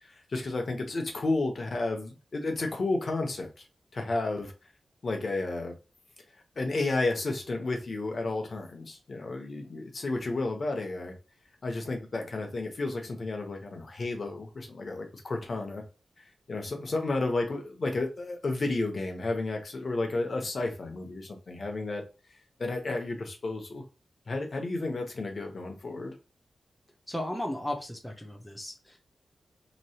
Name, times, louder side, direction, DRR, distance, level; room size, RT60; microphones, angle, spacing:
voice 1, 0.0-3.6 3.9-4.5 5.0-5.7 6.6-11.1 11.6-15.8 16.5-22.0 22.6-23.8 24.3-26.1, left 2 dB, 45° left, 3 dB, 0.8 m, -32 dB
voice 2, 27.1-29.0, left 1 dB, 5° left, 2 dB, 0.5 m, -35 dB
3.0 x 2.2 x 2.8 m, 0.32 s
wide cardioid pair, 145°, 0 cm